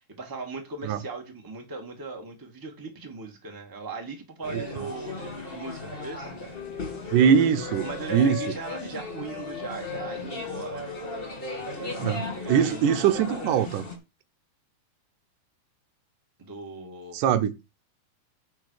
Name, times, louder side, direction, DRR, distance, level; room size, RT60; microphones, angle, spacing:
voice 1, 0.1-6.3 7.8-10.9 12.1-13.1 16.4-17.2, right 3 dB, 10° right, 1.4 m, -39 dB
sound 1, 4.4-14.0, left 1 dB, 20° left, 1.9 m, -37 dB
Wind instrument woodwind instrument, 4.9-8.9 9.3-13.7, left 14 dB, 75° left, 2.2 m, -41 dB
voice 2, 7.1-8.5 12.0-13.8 17.1-17.5, right 8 dB, 80° right, 2.3 m, -22 dB
10.0 x 3.9 x 6.5 m
omnidirectional pair, 3.7 m